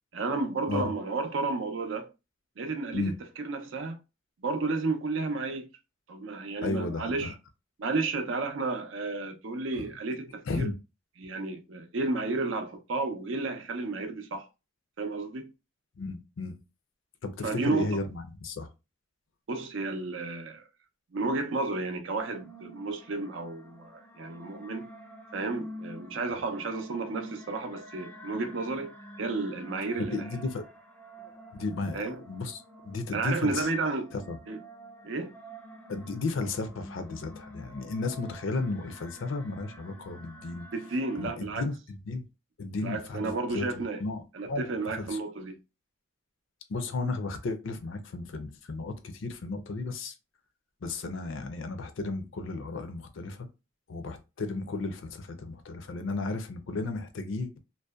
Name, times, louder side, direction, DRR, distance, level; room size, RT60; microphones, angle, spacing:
voice 1, 0.1-2.1 2.6-4.0 4.4-5.7 6.1-7.3 7.8-10.7 11.2-14.5 15.0-15.5 17.4-18.0 19.5-20.6 21.1-24.9 25.3-28.9 29.2-30.3 31.9-32.2 33.1-34.1 34.5-34.6 35.0-35.3 40.7-41.6 42.8-44.0 44.3-45.6, right 3 dB, 70° right, 0.5 m, -32 dB
voice 2, 6.6-7.3 10.5-10.7 16.0-16.5 17.2-18.7 30.1-30.6 31.2-33.7 34.1-34.4 35.9-40.7 41.2-41.7 42.1-42.2 42.6-44.2 44.5-44.7 45.0-45.2 46.7-50.1 50.8-53.5 53.9-57.6, left 3 dB, 70° left, 0.5 m, -34 dB
sound 1, 22.2-41.3, equal, 10° left, 0.3 m, -48 dB
2.6 x 2.1 x 2.2 m
head